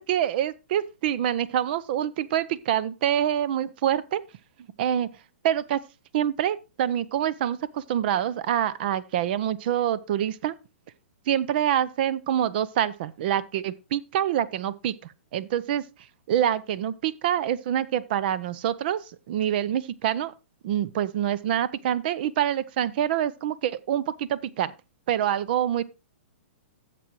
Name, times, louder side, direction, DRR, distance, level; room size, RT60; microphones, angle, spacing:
voice 1, 0.0-4.2 4.8-5.1 5.4-5.8 6.1-10.5 11.3-14.9 15.3-15.8 16.3-19.0 19.3-20.3 20.6-24.7 25.1-25.8, right 10 dB, 45° right, 0.6 m, -26 dB
13.0 x 7.6 x 3.0 m
hypercardioid pair, 150°, 7 cm